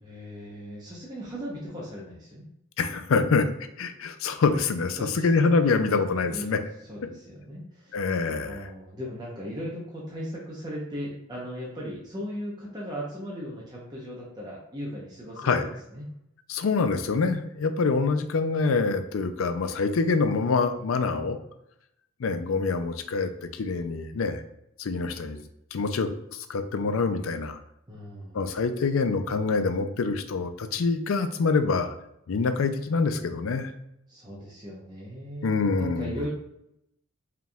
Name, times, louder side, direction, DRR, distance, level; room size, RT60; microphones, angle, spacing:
voice 1, 0.0-2.5 4.9-6.5 6.9-7.9 8.4-16.1 27.9-28.5 34.1-36.3, equal, 20° right, -5 dB, 0.8 m, -38 dB
voice 2, 2.8-3.5 3.8-6.6 7.9-8.7 15.4-15.7 16.5-21.4 22.2-24.4 24.8-25.4 25.7-27.6 28.3-31.9 32.3-33.7 35.4-36.2, left 4 dB, 70° left, 8 dB, 0.4 m, -25 dB
4.8 x 3.4 x 2.3 m, 0.80 s
head